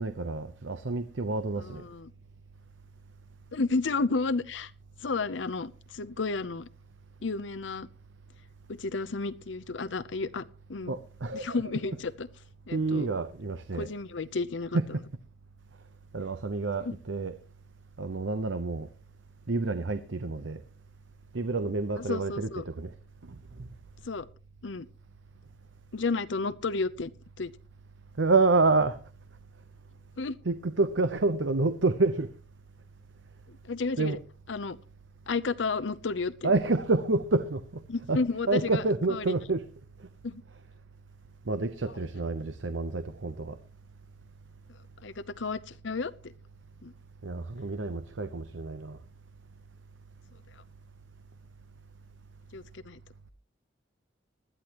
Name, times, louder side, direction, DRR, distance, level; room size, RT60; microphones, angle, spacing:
voice 1, 0.0-1.8 10.9-12.0 12.7-13.9 14.7-14.9 16.1-17.4 18.0-18.9 19.5-20.6 21.3-22.9 23.3-23.7 28.2-29.0 30.4-32.3 34.0-34.2 36.4-37.8 38.1-39.6 41.5-43.6 47.2-49.0, right 3 dB, 90° right, 0.8 m, -28 dB
voice 2, 1.6-2.1 3.5-4.7 5.0-6.7 7.2-7.9 8.7-10.4 10.7-11.0 11.3-12.3 12.7-13.1 13.7-14.8 16.8-16.9 22.0-22.6 24.0-24.3 24.6-24.9 25.9-27.1 27.4-27.5 30.2-30.4 33.5-34.2 34.5-34.8 35.3-36.5 37.9-38.8 39.1-39.3 40.2-40.4 45.0-46.1 46.8-46.9 52.5-53.0, left 3 dB, 80° left, 0.7 m, -32 dB
20.0 x 12.5 x 3.0 m
head